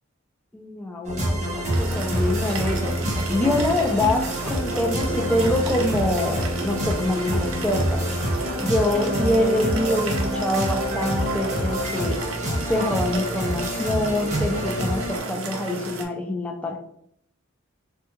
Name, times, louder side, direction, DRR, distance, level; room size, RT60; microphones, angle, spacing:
voice 1, 0.5-2.9 3.3-8.1 8.6-12.2 12.7-16.8, left 1 dB, 5° left, 1 dB, 0.4 m, -25 dB
sound 1, 1.0-15.2, equal, 35° right, 0.8 m, -27 dB
sound 2, 1.7-16.0, right 3 dB, 85° right, 0.6 m, -34 dB
sound 3, 4.3-12.2, equal, 35° left, 0.7 m, -33 dB
3.5 x 2.2 x 2.9 m, 0.70 s
head